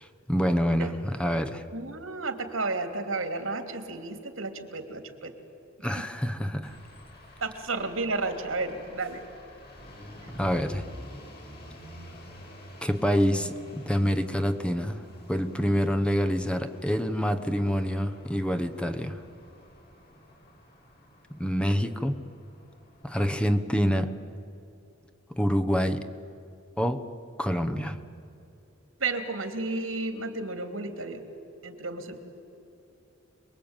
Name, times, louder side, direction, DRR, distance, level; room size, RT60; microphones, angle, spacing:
voice 1, 0.0-1.6 5.8-6.8 10.4-10.8 12.8-15.0 15.3-19.2 21.3-22.2 23.0-24.1 25.3-26.1 26.8-27.1 27.4-28.0, equal, 5° left, 1.1 m, -26 dB
voice 2, 1.7-5.3 5.8-5.9 7.4-9.2 10.2-10.4 29.0-31.2 31.6-32.2, right 3 dB, 90° right, 3.0 m, -32 dB
sound 1, 6.6-23.6, left 1 dB, 50° left, 6.9 m, -49 dB
28.0 x 21.5 x 9.0 m
head